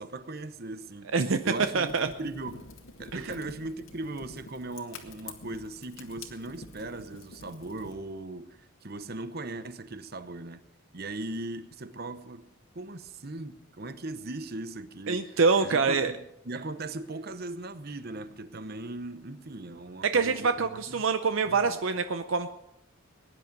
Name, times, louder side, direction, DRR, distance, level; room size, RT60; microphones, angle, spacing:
voice 1, 0.0-1.1 1.4-2.7 3.0-10.6 10.9-12.4 12.7-16.2 16.4-21.0 21.5-21.8, right 2 dB, 45° right, 11 dB, 0.9 m, -39 dB
Fire, 1.4-7.9, left 3 dB, 70° left, 1.9 m, -48 dB
voice 2, 1.7-2.1 3.1-3.2 15.1-16.1 20.0-22.5, right 4 dB, 65° right, 9 dB, 0.6 m, -25 dB
19.5 x 10.5 x 5.4 m, 0.83 s
head